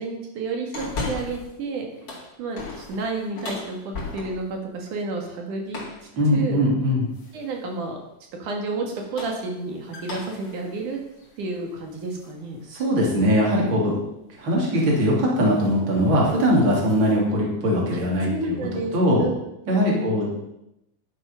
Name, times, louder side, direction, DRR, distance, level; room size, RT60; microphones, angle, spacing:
voice 1, 0.0-1.9 2.4-5.8 6.3-6.6 7.3-8.0 8.4-11.0 11.4-12.6 18.3-18.9 19.2-19.3 19.7-20.1, right 3 dB, 70° right, 1 dB, 3.1 m, -31 dB
sound 1, 0.7-1.6 1.9-4.6 5.7-6.1 7.1-7.6 8.9-12.3 12.8-12.9 14.4-14.6 15.0-15.2 15.5-15.8 16.1-17.2, left 3 dB, 35° left, 2.7 m, -37 dB
voice 2, 6.2-7.1 12.7-14.0 14.4-18.5 18.9-19.3 19.7-20.3, equal, 35° right, -3 dB, 3.5 m, -21 dB
11.0 x 7.6 x 5.6 m, 0.85 s
omnidirectional pair, 3.8 m